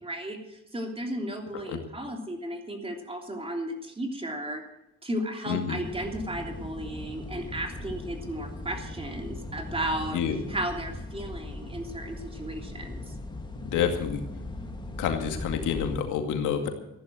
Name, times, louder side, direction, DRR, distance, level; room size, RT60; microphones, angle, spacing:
voice 1, 0.0-4.6 5.0-10.2 10.5-13.1, right 1 dB, 20° right, 3 dB, 3.2 m, -34 dB
voice 2, 5.5-5.8 10.1-10.4 13.6-14.2 15.0-16.7, left 8 dB, 90° left, 5 dB, 2.2 m, -28 dB
sound 1, 5.8-16.0, left 2 dB, 15° left, 2.5 m, -39 dB
15.0 x 11.0 x 6.5 m, 0.89 s
cardioid pair, 90°, 30 cm